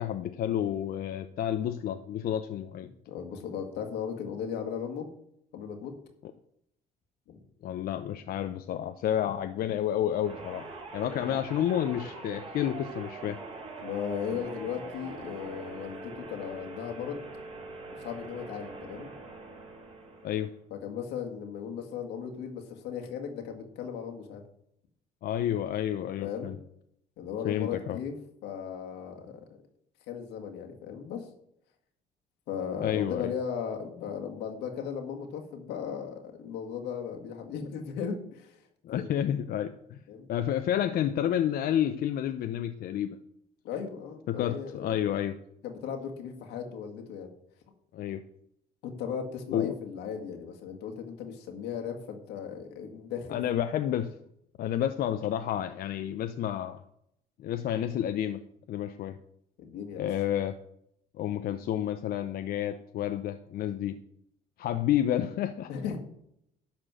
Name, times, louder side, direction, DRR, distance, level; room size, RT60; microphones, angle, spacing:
voice 1, 0.0-2.9 7.6-10.7 10.9-13.4 20.2-20.5 25.2-26.6 27.4-28.0 32.8-33.3 38.8-40.0 40.3-43.2 44.3-45.4 47.9-48.2 49.5-49.7 53.3-54.1 54.6-56.8 57.4-58.4 58.7-59.2 60.0-60.5 61.2-64.0 64.6-65.7, left 10 dB, 60° left, 8 dB, 0.7 m, -30 dB
voice 2, 3.1-5.1 5.5-5.9 7.3-7.4 11.2-11.4 13.8-17.2 18.0-19.1 20.7-24.4 26.2-26.5 27.2-28.1 28.4-29.5 30.1-31.3 32.5-39.1 40.1-40.3 43.6-45.0 45.6-47.3 48.8-53.4 53.9-54.0 59.6-60.2 65.7-66.0, left 7 dB, 90° left, 3 dB, 2.0 m, -37 dB
sound 1, 10.2-20.6, right 3 dB, 35° right, 3.3 m, -43 dB
11.5 x 4.5 x 7.4 m, 0.73 s
cardioid pair, 110°, 17 cm